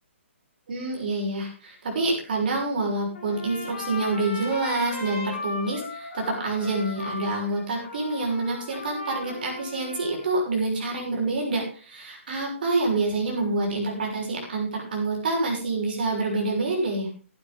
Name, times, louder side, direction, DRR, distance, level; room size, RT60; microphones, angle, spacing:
voice 1, 0.7-17.1, right 2 dB, 40° right, -1 dB, 6.4 m, -27 dB
Trumpet, 3.1-10.5, left 2 dB, 40° left, 5.8 m, -37 dB
14.5 x 11.0 x 3.6 m, 0.38 s
hypercardioid pair, 175°, 7 cm